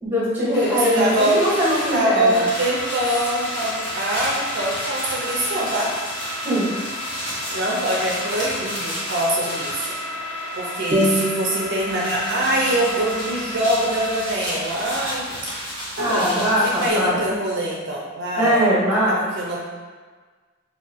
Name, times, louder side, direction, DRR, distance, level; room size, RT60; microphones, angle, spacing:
voice 1, 0.0-2.5 6.4-6.7 16.0-17.2 18.4-19.2, equal, 10° right, -7 dB, 1.3 m, -21 dB
sound 1, 0.5-14.2, left 1 dB, 60° left, 0.5 m, -33 dB
voice 2, 0.6-1.4 1.9-5.9 7.5-9.8 10.5-15.4 16.0-18.7 19.4-19.6, right 1 dB, 60° right, -3 dB, 0.6 m, -24 dB
sound 2, 0.9-10.0 10.4-11.5 11.8-16.9, equal, 25° left, 1.4 m, -32 dB
sound 3, 10.9-15.9, equal, 30° right, 0.8 m, -29 dB
4.5 x 2.8 x 3.4 m, 1.4 s
head